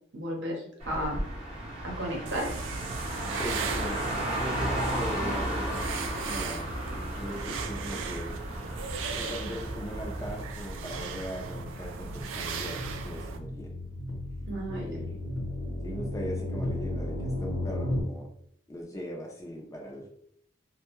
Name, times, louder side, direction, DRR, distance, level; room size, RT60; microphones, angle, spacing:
voice 1, 0.1-1.2 1.8-2.5 14.5-14.9, equal, 65° right, 0 dB, 0.8 m, -33 dB
Car, 0.8-10.3, right 1 dB, 35° right, 0.7 m, -34 dB
sound 1, 2.3-13.4, right 5 dB, 85° right, 0.3 m, -37 dB
voice 2, 3.3-4.0 4.4-8.3 9.2-13.7 14.7-15.2 15.8-18.2 18.7-20.1, equal, 15° left, 0 dB, 0.4 m, -39 dB
sound 2, 9.1-18.0, left 1 dB, 85° left, 0.8 m, -36 dB
2.1 x 2.1 x 2.9 m, 0.68 s
head